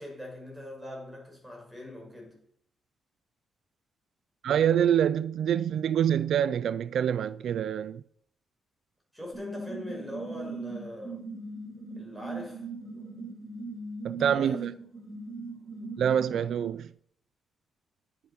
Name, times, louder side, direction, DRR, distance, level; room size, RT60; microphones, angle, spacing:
voice 1, 0.0-2.4 9.1-11.2 11.9-12.7 14.2-14.6, left 1 dB, ahead, 6.6 m, -41 dB
voice 2, 4.4-8.0 14.0-14.7 16.0-16.9, right 9 dB, 75° right, 0.4 m, -26 dB
sound 1, 9.3-16.7, right 3 dB, 45° right, 4.1 m, -39 dB
10.0 x 8.7 x 6.0 m
cardioid pair, 90°, 0 cm